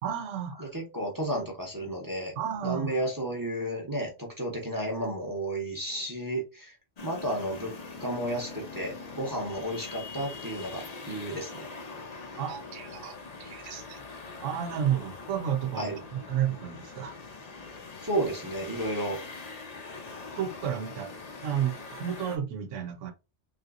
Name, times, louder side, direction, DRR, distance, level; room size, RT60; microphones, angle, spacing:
voice 1, 0.0-0.6 2.4-2.9 12.4-14.0 14.4-16.0 16.3-17.1 20.4-21.1 21.4-23.1, right 9 dB, 85° right, 1.0 m, -32 dB
voice 2, 0.6-2.3 2.6-6.8 7.0-7.7 8.0-11.7 15.8-15.9 18.0-19.2, right 1 dB, 20° right, 0.8 m, -32 dB
sound 1, 7.0-22.4, left 4 dB, 40° left, 0.6 m, -43 dB
3.4 x 2.8 x 2.4 m
omnidirectional pair, 1.2 m